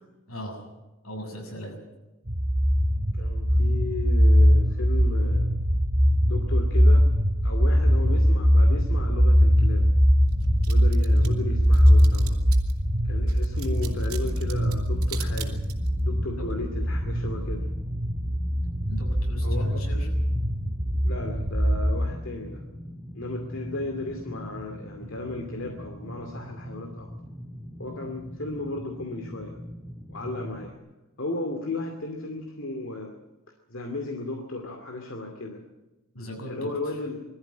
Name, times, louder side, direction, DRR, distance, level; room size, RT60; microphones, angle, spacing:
voice 1, 0.3-0.7 1.0-1.8 16.4-16.5 18.9-20.1 36.1-36.9, equal, 75° left, 1 dB, 7.2 m, -38 dB
sound 1, 2.3-22.0, equal, 40° right, 2.6 m, -21 dB
voice 2, 3.2-5.5 6.2-7.1 7.4-9.9 10.7-12.4 13.0-15.6 16.0-17.7 19.4-19.8 21.0-22.6 23.1-27.1 27.8-29.6 30.1-30.8 31.2-33.1 33.7-35.6 36.5-37.2, left 2 dB, 60° left, 3 dB, 2.4 m, -35 dB
sound 2, 10.3-12.8 13.3-16.0, right 11 dB, 85° right, 3.1 m, -41 dB
sound 3, 13.8-30.7, equal, 5° left, 1.7 m, -41 dB
22.0 x 14.0 x 9.4 m, 1.0 s
head